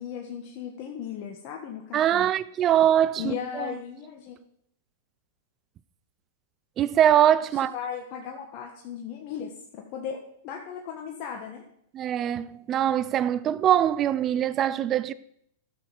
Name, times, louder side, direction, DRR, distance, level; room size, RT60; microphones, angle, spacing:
voice 1, 0.0-2.3 3.2-4.4 7.7-11.6, left 8 dB, 45° left, 1.6 m, -36 dB
voice 2, 1.9-3.7 6.8-7.8 11.9-15.1, right 10 dB, 30° right, 0.6 m, -23 dB
12.5 x 6.9 x 6.0 m
hypercardioid pair, 115°, 0 cm